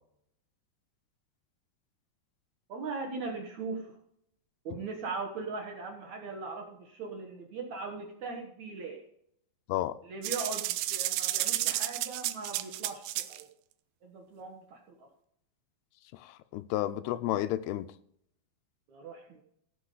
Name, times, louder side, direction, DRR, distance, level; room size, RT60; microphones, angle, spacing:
voice 1, 2.7-3.9 4.6-9.0 10.0-13.5 14.0-15.1 18.9-19.4, right 4 dB, 60° right, 2.2 m, -39 dB
sound 1, 10.2-13.4, right 15 dB, 80° right, 2.3 m, -32 dB
voice 2, 16.1-17.9, left 14 dB, 85° left, 2.5 m, -32 dB
17.0 x 6.2 x 4.9 m
omnidirectional pair, 4.7 m